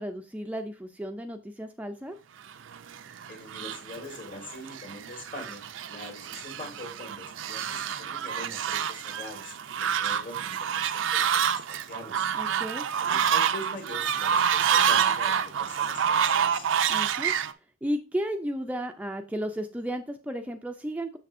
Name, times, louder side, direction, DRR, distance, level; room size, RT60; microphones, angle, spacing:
voice 1, 0.0-2.2 12.3-12.9 16.9-17.3 17.8-21.2, equal, 10° right, 5 dB, 0.4 m, -33 dB
Fowl, 2.7-17.5, right 8 dB, 85° right, 0.5 m, -28 dB
voice 2, 3.3-5.6 5.9-12.3 13.0-16.7, left 1 dB, 45° left, 4 dB, 1.9 m, -43 dB
6.8 x 6.6 x 2.6 m, 0.32 s
head